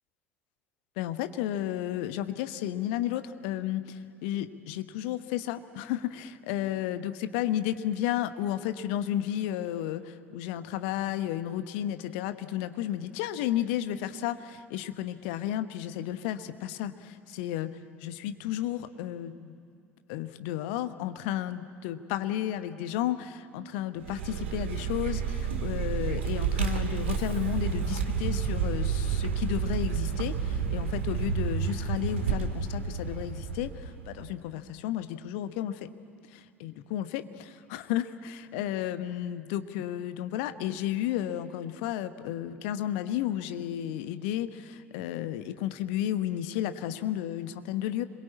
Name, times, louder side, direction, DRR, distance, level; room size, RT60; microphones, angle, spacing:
voice 1, 1.0-19.6 20.1-35.9 36.3-48.0, left 12 dB, 60° left, 11 dB, 1.1 m, -33 dB
Vehicle, 24.0-34.3, right 6 dB, 70° right, 1.8 m, -30 dB
26.5 x 22.0 x 8.5 m, 2.4 s
figure-of-eight pair, 65°, 7 cm